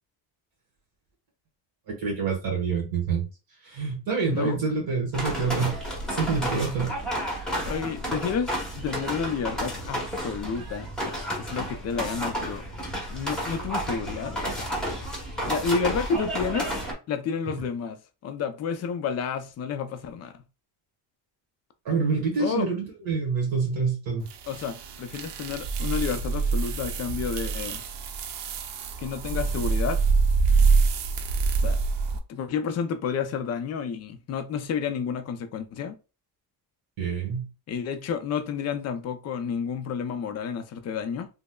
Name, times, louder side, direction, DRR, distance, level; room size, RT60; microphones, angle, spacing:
voice 1, 1.9-3.2 3.6-5.8 6.1-6.9 21.8-24.2 37.0-37.5, right 5 dB, 55° right, 1.4 m, -27 dB
sound 1, 5.1-16.9, right 1 dB, ahead, 0.9 m, -31 dB
voice 2, 7.7-12.6 13.1-14.7 14.9-15.2 15.5-16.7 17.1-20.4 22.4-22.7 24.5-27.8 29.0-30.0 31.6-31.8 32.3-36.0 37.7-41.3, left 6 dB, 40° left, 0.4 m, -30 dB
sound 2, 24.3-32.2, right 4 dB, 70° right, 0.7 m, -25 dB
5.2 x 2.0 x 2.3 m
cardioid pair, 160°, 44 cm